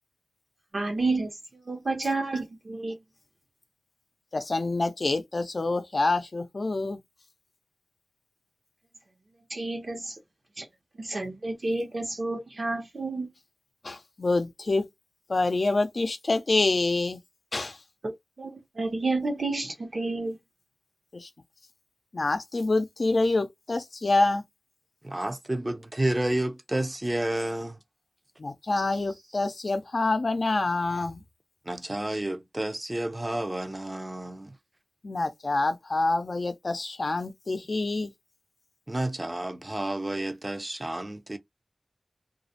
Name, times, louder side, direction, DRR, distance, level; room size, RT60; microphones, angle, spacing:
voice 1, 0.7-1.3 1.7-2.9 9.5-10.2 10.6-10.7 11.0-13.3 18.0-18.1 18.4-20.4, right 3 dB, 75° right, 0.9 m, -30 dB
voice 2, 4.3-7.0 13.8-14.9 15.3-17.2 17.5-17.8 21.1-21.3 22.1-24.4 28.4-31.2 35.0-38.1, left 2 dB, 75° left, 0.5 m, -26 dB
voice 3, 25.0-27.8 28.8-28.9 31.7-34.6 38.9-41.4, right 1 dB, 30° right, 0.5 m, -30 dB
2.4 x 2.0 x 2.7 m
wide cardioid pair, 50°, 0 cm